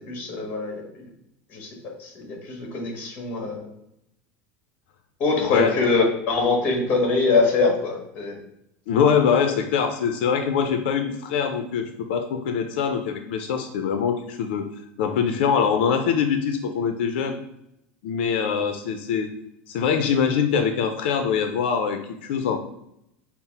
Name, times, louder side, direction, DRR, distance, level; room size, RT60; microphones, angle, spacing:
voice 1, 0.1-0.8 1.5-1.7 2.0-3.7 5.2-8.3, left 3 dB, 35° left, 1 dB, 1.4 m, -23 dB
voice 2, 5.4-5.7 8.9-14.7 15.0-17.4 18.0-19.3 19.7-22.6, left 7 dB, 90° left, 6 dB, 0.5 m, -23 dB
5.6 x 2.0 x 4.2 m, 0.79 s
supercardioid pair, 160°, 6 cm